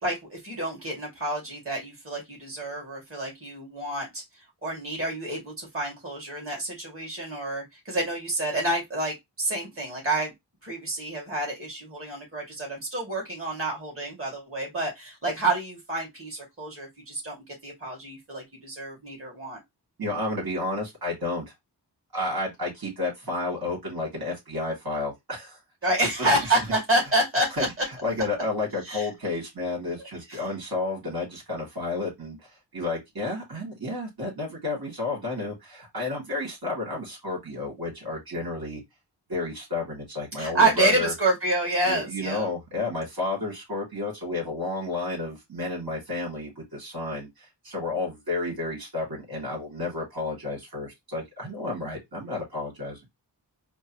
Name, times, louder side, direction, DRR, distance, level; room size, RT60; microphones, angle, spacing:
voice 1, 0.0-10.3 10.6-19.6 25.8-27.8 28.8-29.1 30.3-30.4 40.4-42.5, right 2 dB, 30° right, 2.5 m, -28 dB
voice 2, 20.0-21.5 22.1-25.6 26.2-26.3 27.6-27.7 28.0-32.4 32.7-38.8 39.3-41.1 41.9-53.0, left 2 dB, 60° right, 2.8 m, -31 dB
4.4 x 2.3 x 3.0 m
cardioid pair, 45°, 42 cm